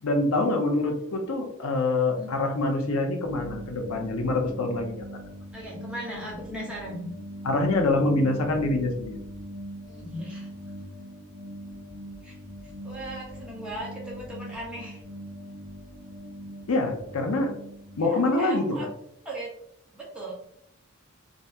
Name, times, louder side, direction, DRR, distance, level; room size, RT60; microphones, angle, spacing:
voice 1, 0.0-5.0 7.4-9.1 16.7-17.5 18.0-18.6, left 2 dB, 85° left, 4 dB, 0.6 m, -25 dB
sound 1, 3.2-18.1, equal, 70° left, 1.0 m, -42 dB
voice 2, 5.5-7.1 9.9-10.5 12.2-12.3 12.8-15.0 18.0-18.9 19.2-19.5 19.9-20.3, right 1 dB, 5° right, -5 dB, 0.9 m, -37 dB
3.8 x 2.1 x 2.7 m, 0.72 s
head